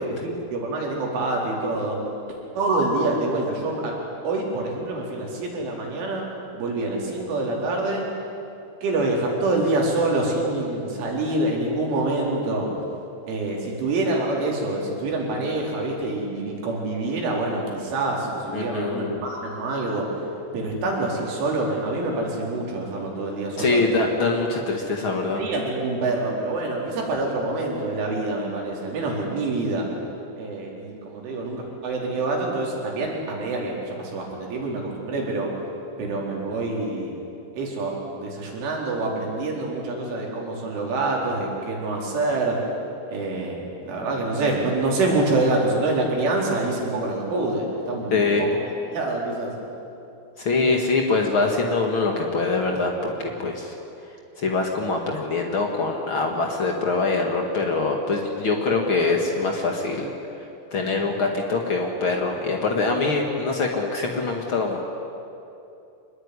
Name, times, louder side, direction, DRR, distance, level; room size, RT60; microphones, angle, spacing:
voice 1, 0.1-2.0 2.6-4.0 4.2-6.3 6.5-8.0 8.8-12.7 13.3-20.0 20.5-23.8 25.4-29.9 30.4-35.5 36.0-37.1 37.5-42.6 43.1-48.6 48.9-49.5, right 2 dB, 75° right, -2 dB, 6.8 m, -26 dB
voice 2, 18.5-19.2 23.6-25.4 48.1-48.5 50.4-53.7 54.4-60.1 60.7-64.8, left 3 dB, 85° left, 1 dB, 1.1 m, -24 dB
25.5 x 21.5 x 9.8 m, 2.8 s
omnidirectional pair, 5.7 m